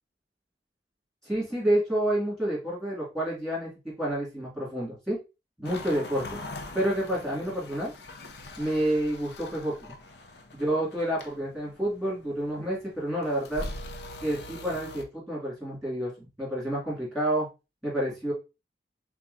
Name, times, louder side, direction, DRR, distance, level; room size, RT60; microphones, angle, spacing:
voice 1, 1.2-5.2 5.6-6.4 6.7-7.9 8.6-9.9 10.5-13.6 14.2-17.5 17.8-18.3, right 1 dB, ahead, -6 dB, 2.2 m, -29 dB
sound 1, 5.6-15.0, left 2 dB, 70° left, 0.5 m, -43 dB
4.5 x 3.6 x 2.6 m, 0.28 s
head